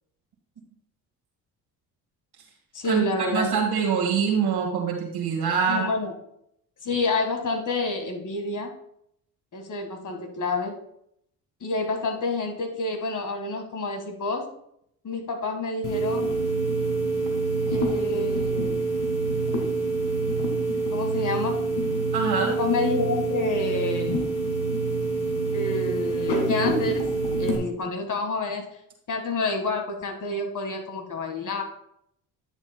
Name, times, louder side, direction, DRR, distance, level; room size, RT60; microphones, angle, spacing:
voice 1, 2.7-3.6 5.6-6.1 6.8-8.7 9.5-10.7 11.6-14.5 15.0-16.3 17.7-18.8 20.9-21.6 22.4-24.3 25.5-27.1 27.4-28.7 29.1-31.6, left 3 dB, 40° left, 4 dB, 1.7 m, -29 dB
voice 2, 3.3-5.9 22.1-22.5, right 6 dB, 60° right, -1 dB, 1.8 m, -24 dB
sound 1, 15.8-27.6, right 3 dB, 65° left, 1.9 m, -26 dB
10.5 x 7.1 x 2.2 m, 0.73 s
hypercardioid pair, 50°, 45 cm